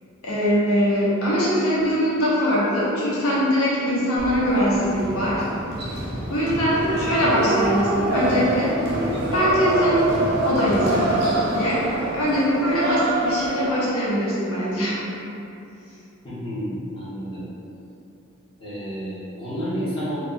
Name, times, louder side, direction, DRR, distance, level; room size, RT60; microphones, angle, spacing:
voice 1, 0.2-5.4 6.3-8.7 9.3-10.1 10.4-11.1 11.5-11.8 12.1-15.0, equal, 90° left, -7 dB, 0.8 m, -22 dB
sound 1, 4.2-13.7, right 1 dB, 50° right, 0.6 m, -25 dB
voice 2, 16.2-17.5 18.6-20.2, equal, 25° left, -12 dB, 1.0 m, -30 dB
3.0 x 2.3 x 3.8 m, 2.7 s
head